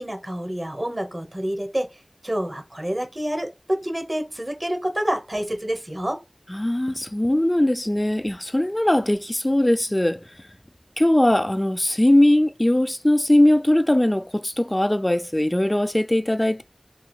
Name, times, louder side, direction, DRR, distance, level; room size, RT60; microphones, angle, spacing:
voice 1, 0.0-1.9 2.2-6.2, equal, 35° right, 0.8 m, -28 dB
voice 2, 6.5-10.2 11.0-16.6, left 1 dB, 30° left, 0.3 m, -20 dB
2.8 x 2.4 x 2.9 m
wide cardioid pair, 45°, 0 cm